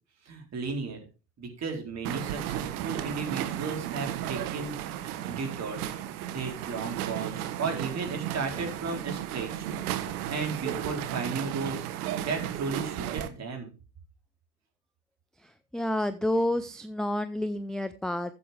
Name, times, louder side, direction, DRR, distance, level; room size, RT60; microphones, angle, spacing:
voice 1, 0.3-1.0 1.4-5.9 6.3-9.7 10.3-11.9 12.2-13.7, right 4 dB, 35° right, 2 dB, 4.1 m, -34 dB
sound 1, 2.0-13.3, right 12 dB, 65° right, 1.3 m, -34 dB
voice 2, 15.4-18.3, left 1 dB, ahead, 11 dB, 0.4 m, -29 dB
14.0 x 7.7 x 3.5 m, 0.33 s
hypercardioid pair, 85°, 47 cm